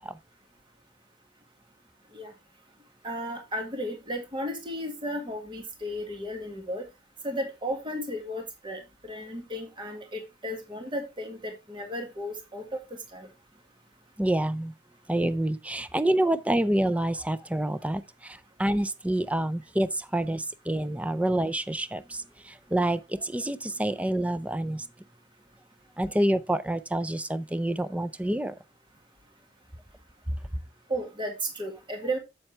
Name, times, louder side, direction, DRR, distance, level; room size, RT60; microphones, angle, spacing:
voice 1, 3.0-6.8 7.2-12.8 13.1-13.3 30.9-32.2, equal, 25° right, 1.7 m, -34 dB
voice 2, 14.2-14.7 15.1-24.9 26.0-28.5, right 1 dB, 10° right, 0.4 m, -27 dB
7.6 x 7.2 x 3.2 m
head